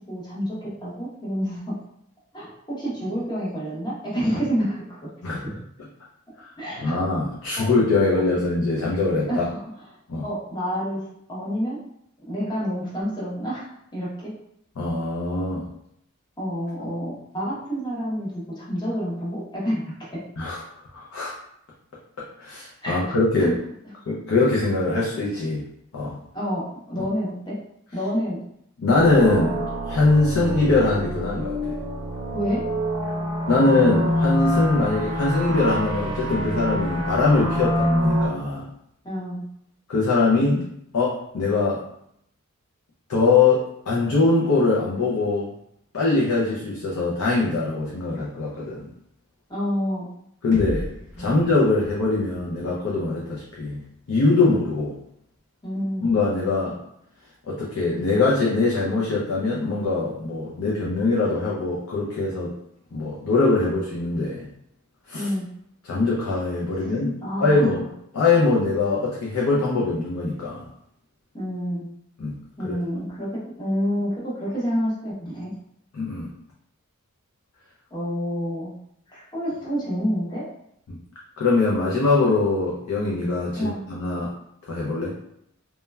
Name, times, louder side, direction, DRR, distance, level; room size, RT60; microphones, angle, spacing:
voice 1, 0.1-1.8 2.3-5.5 6.6-7.1 7.6-7.7 9.3-9.6 10.2-11.8 12.3-14.3 16.4-20.2 22.8-23.0 23.4-23.5 26.3-27.6 27.9-28.4 32.3-32.6 39.0-39.4 49.5-50.1 51.2-51.4 55.6-56.1 65.1-65.5 66.8-66.9 67.2-67.9 71.3-71.9 72.6-75.5 77.9-78.7 79.1-80.5 83.6-83.8, equal, 20° left, -6 dB, 0.7 m, -28 dB
voice 2, 6.8-9.5 10.1-10.2 14.8-15.7 20.4-20.6 20.9-21.4 22.4-23.6 24.1-25.7 25.9-26.2 28.8-29.6 29.8-31.7 33.5-38.7 39.9-40.6 40.9-41.8 43.1-45.5 45.9-48.9 50.4-50.9 51.2-53.8 54.1-54.9 56.0-56.8 57.5-62.5 62.9-64.5 65.1-65.3 65.8-67.2 67.4-67.8 68.1-70.7 72.2-72.3 72.6-72.7 75.9-76.3 80.9-81.0 81.4-84.3 84.7-85.1, left 3 dB, 65° left, -5 dB, 0.5 m, -22 dB
sound 1, 28.9-38.3, equal, 75° right, 0.6 m, -26 dB
sound 2, 50.5-54.4, equal, 40° right, 0.6 m, -38 dB
3.0 x 2.1 x 2.2 m, 0.74 s
head